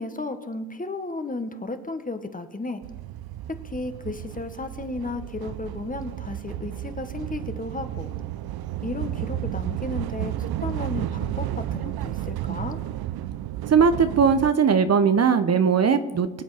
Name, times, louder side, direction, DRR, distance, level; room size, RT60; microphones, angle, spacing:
voice 1, 0.0-2.8 3.6-8.1 8.8-12.8, left 2 dB, 20° left, 9 dB, 1.5 m, -34 dB
sound 1, 2.8-14.5, right 13 dB, 60° right, 0.7 m, -32 dB
voice 2, 13.7-16.4, right 6 dB, 35° right, 10 dB, 1.0 m, -19 dB
23.5 x 7.9 x 5.1 m, 1.2 s
hypercardioid pair, 60°, 43 cm